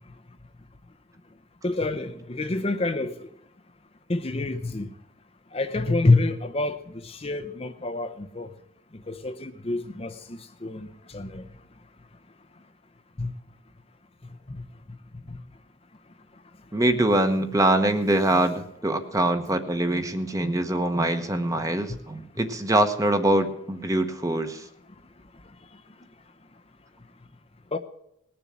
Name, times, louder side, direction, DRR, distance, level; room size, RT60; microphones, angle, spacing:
voice 1, 1.6-3.1 4.1-4.9 5.5-6.8 7.0-8.5 9.1-10.1 10.6-10.9 11.1-11.4 13.2-13.3 14.5-14.6 27.7-27.8, left 2 dB, 30° left, 0.7 m, -26 dB
voice 2, 16.7-24.6, right 1 dB, 15° right, 1.0 m, -24 dB
19.5 x 7.1 x 7.4 m
head